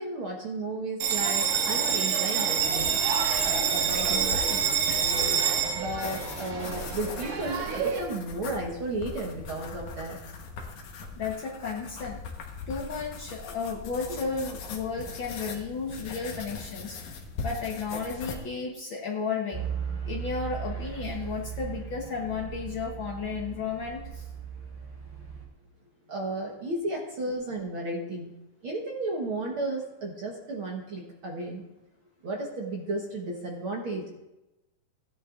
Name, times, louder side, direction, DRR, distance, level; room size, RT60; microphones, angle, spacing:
voice 1, 0.0-3.0 3.4-4.6 5.0-5.4 5.7-10.2 26.1-28.3 28.6-31.6 32.2-34.0, right 2 dB, 60° right, -1 dB, 1.5 m, -34 dB
Bell, 1.0-8.0, right 7 dB, 85° right, 3.1 m, -27 dB
sound 1, 2.6-18.4, left 4 dB, 65° left, 2.4 m, -40 dB
voice 2, 11.2-12.2 12.7-17.0 17.4-19.7 20.0-24.3, left 5 dB, 80° left, -1 dB, 1.1 m, -33 dB
sound 2, 19.5-25.5, right 8 dB, 40° right, 0.4 m, -37 dB
16.0 x 11.0 x 2.5 m, 0.96 s
omnidirectional pair, 3.9 m